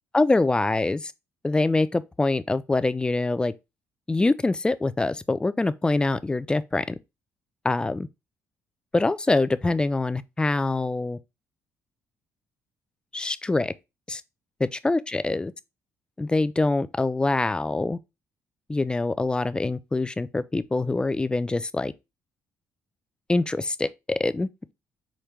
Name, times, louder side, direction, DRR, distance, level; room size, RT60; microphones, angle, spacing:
voice 1, 0.1-1.1 1.4-3.5 4.1-7.0 7.6-8.1 8.9-11.2 13.1-13.7 14.1-14.2 14.6-15.5 16.2-18.0 18.7-21.9 23.3-24.7, left 2 dB, 15° left, 0.3 m, -24 dB
5.0 x 2.1 x 4.5 m
cardioid pair, 95°, 6 cm